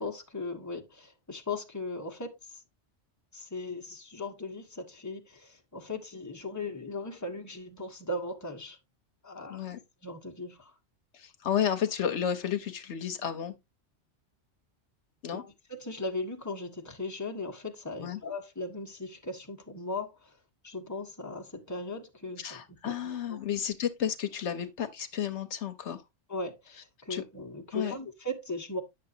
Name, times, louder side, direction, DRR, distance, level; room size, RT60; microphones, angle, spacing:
voice 1, 0.0-2.6 3.3-8.8 9.2-9.6 10.0-10.7 15.3-20.4 20.6-23.4 26.3-28.8, left 2 dB, 15° left, 1.3 m, -38 dB
voice 2, 11.1-13.5 15.2-15.4 18.0-18.2 22.4-26.0 27.1-27.2 27.7-28.0, left 9 dB, 75° left, 1.1 m, -32 dB
9.6 x 6.5 x 2.7 m
omnidirectional pair, 1.2 m